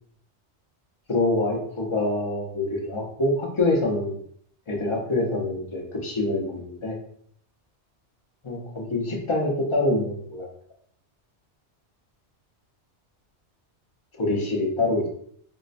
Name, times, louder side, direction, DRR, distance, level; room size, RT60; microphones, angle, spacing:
voice 1, 1.1-4.2 4.7-7.0 8.4-10.5 14.2-15.1, left 2 dB, 35° left, 0 dB, 0.5 m, -25 dB
4.6 x 2.1 x 2.5 m, 0.63 s
omnidirectional pair, 1.2 m